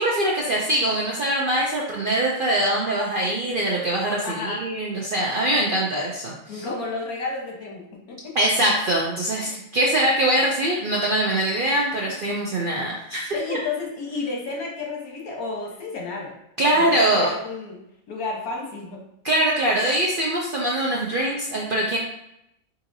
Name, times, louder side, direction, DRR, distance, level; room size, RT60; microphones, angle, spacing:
voice 1, 0.0-6.7 8.3-13.6 16.6-17.3 19.2-22.0, right 1 dB, 65° right, -3 dB, 0.5 m, -23 dB
voice 2, 4.2-4.6 6.5-8.3 13.3-16.3 16.7-17.8 18.1-19.0, left 3 dB, 80° left, -1 dB, 1.4 m, -31 dB
4.8 x 2.7 x 2.6 m, 0.80 s
omnidirectional pair, 1.5 m